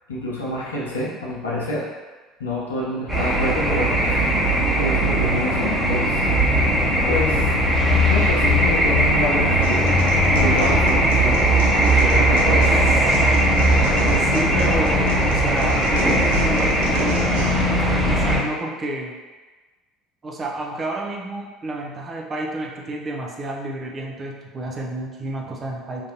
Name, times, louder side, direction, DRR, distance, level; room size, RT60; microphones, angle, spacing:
voice 1, 0.1-1.8 2.4-4.4 4.7-6.2 7.0-7.5 8.1-9.8 10.3-12.6, left 1 dB, 80° left, -5 dB, 0.7 m, -27 dB
sound 1, 3.1-18.4, equal, 15° right, 1.0 m, -19 dB
sound 2, 9.6-17.6, right 2 dB, 70° right, 0.4 m, -33 dB
voice 2, 14.0-17.4 18.1-19.2 20.2-26.1, right 1 dB, 30° right, -1 dB, 0.6 m, -30 dB
3.7 x 2.6 x 2.9 m, 1.3 s
figure-of-eight pair, 65°, 0 cm